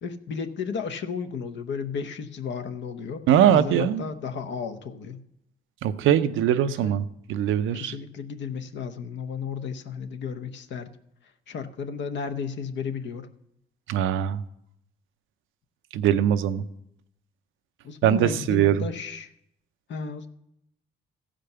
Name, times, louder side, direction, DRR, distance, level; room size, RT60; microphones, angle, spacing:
voice 1, 0.0-3.2 3.5-5.2 6.6-6.9 7.7-10.9 11.5-13.3 17.8-19.3 19.9-20.3, left 6 dB, 65° left, 8 dB, 1.0 m, -33 dB
voice 2, 3.3-4.0 5.8-7.9 13.9-14.4 15.9-16.6 18.0-18.8, right 10 dB, 85° right, 12 dB, 0.6 m, -21 dB
14.5 x 5.1 x 6.7 m, 0.78 s
cardioid pair, 90°, 20 cm